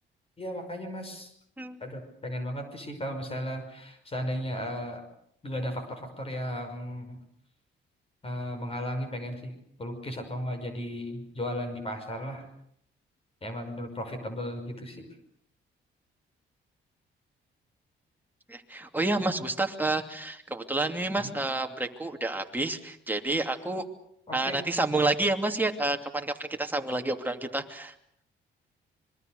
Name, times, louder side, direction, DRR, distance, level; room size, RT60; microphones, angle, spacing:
voice 1, 0.4-1.3 1.8-5.0 5.4-7.2 8.2-12.5 13.4-15.1 21.2-21.3 24.3-24.6, equal, 30° left, 6 dB, 5.7 m, -35 dB
voice 2, 18.5-23.9 24.3-27.9, right 2 dB, 10° right, 4 dB, 2.7 m, -29 dB
26.0 x 22.5 x 6.7 m, 0.69 s
cardioid pair, 90°, 20 cm